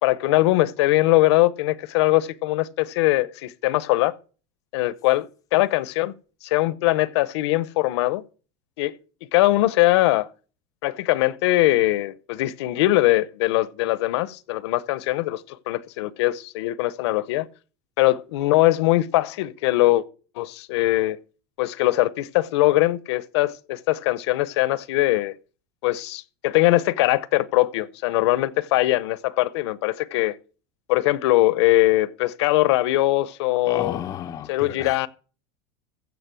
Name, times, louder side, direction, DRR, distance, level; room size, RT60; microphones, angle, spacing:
voice 1, 0.0-4.1 4.7-5.3 5.5-6.1 6.4-8.2 8.8-8.9 9.3-10.3 10.8-17.5 18.0-20.0 20.4-21.2 21.6-25.3 25.8-30.4 30.9-34.0 34.5-35.1, left 17 dB, 70° left, 0.8 m, -21 dB
voice 2, 33.7-35.1, left 10 dB, 25° left, 0.5 m, -32 dB
15.0 x 5.2 x 7.7 m
supercardioid pair, 155°, 15 cm